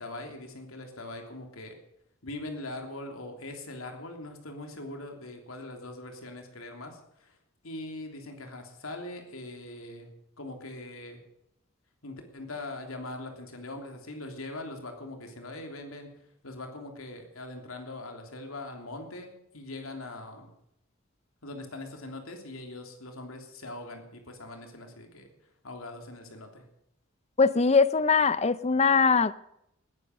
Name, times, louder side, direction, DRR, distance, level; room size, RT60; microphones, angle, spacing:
voice 1, 0.0-1.8 2.2-7.4 7.6-10.1 10.4-11.2 12.0-16.1 16.4-20.5 21.4-25.3 25.6-26.7, left 2 dB, 90° left, 3.2 m, -41 dB
voice 2, 27.4-29.4, left 5 dB, 30° left, 0.6 m, -22 dB
19.5 x 10.5 x 6.6 m
head